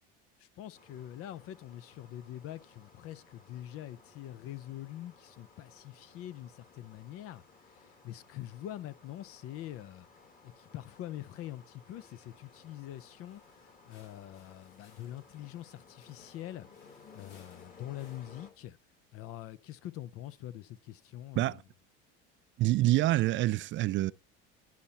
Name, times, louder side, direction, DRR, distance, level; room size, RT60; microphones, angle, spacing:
voice 1, 0.4-10.1 10.4-18.8 19.1-21.6, left 13 dB, 50° left, 0.7 m, -44 dB
sound 1, 0.7-18.5, left 4 dB, 30° left, 2.2 m, -59 dB
sound 2, 13.2-18.5, left 4 dB, 75° left, 3.9 m, -65 dB
voice 2, 22.6-24.1, right 16 dB, 40° right, 0.4 m, -26 dB
10.5 x 5.8 x 4.1 m
supercardioid pair, 100°, 29 cm